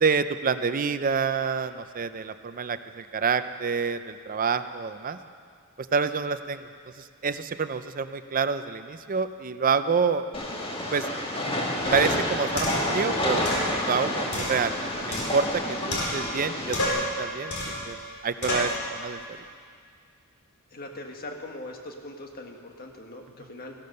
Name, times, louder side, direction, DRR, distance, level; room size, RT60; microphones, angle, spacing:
voice 1, 0.0-5.2 5.8-6.7 7.0-10.2 10.9-11.1 11.4-11.5 11.9-13.4 13.8-18.0 18.2-19.2, right 5 dB, 40° right, 11 dB, 0.5 m, -27 dB
Train, 10.3-16.9, left 1 dB, 25° left, 1.7 m, -29 dB
sound 1, 11.9-12.0 12.6-13.0 13.5-13.7 14.3-15.6 15.9-16.4 16.7-17.1 17.5-17.9 18.4-18.8, left 1 dB, 70° left, 4.0 m, -30 dB
voice 2, 20.7-23.7, left 2 dB, 45° left, 2 dB, 1.6 m, -41 dB
15.5 x 12.0 x 6.6 m, 2.2 s
head